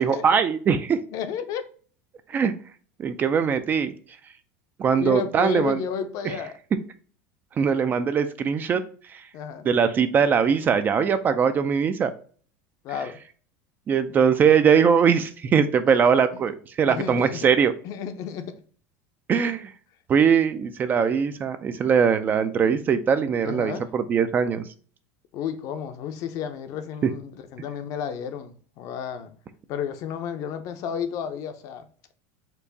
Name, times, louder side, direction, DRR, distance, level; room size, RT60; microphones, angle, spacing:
voice 1, 0.0-1.0 2.3-2.5 3.0-3.9 4.8-5.8 7.6-8.8 9.1-9.2 9.6-12.1 13.9-17.7 19.3-19.7 20.1-24.7, right 7 dB, 25° right, 0.4 m, -21 dB
voice 2, 1.1-1.6 5.0-6.5 9.3-9.7 12.8-13.2 15.9-16.0 16.9-17.4 17.8-18.6 23.4-23.9 25.3-29.3 29.7-31.9, left 7 dB, 45° left, 0.6 m, -32 dB
4.5 x 2.5 x 3.9 m
supercardioid pair, 145°, 8 cm